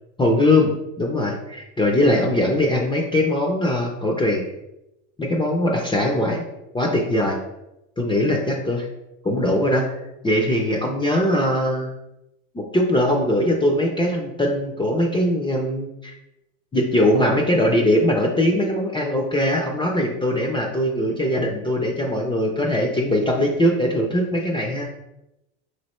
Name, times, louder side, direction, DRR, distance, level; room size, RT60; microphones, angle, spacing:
voice 1, 0.2-4.4 5.2-6.4 6.7-7.4 8.0-8.9 9.2-9.9 10.2-11.9 12.5-16.1 16.7-24.9, left 1 dB, 15° left, 0 dB, 0.4 m, -21 dB
3.1 x 2.7 x 4.2 m, 0.90 s
supercardioid pair, 100°, 41 cm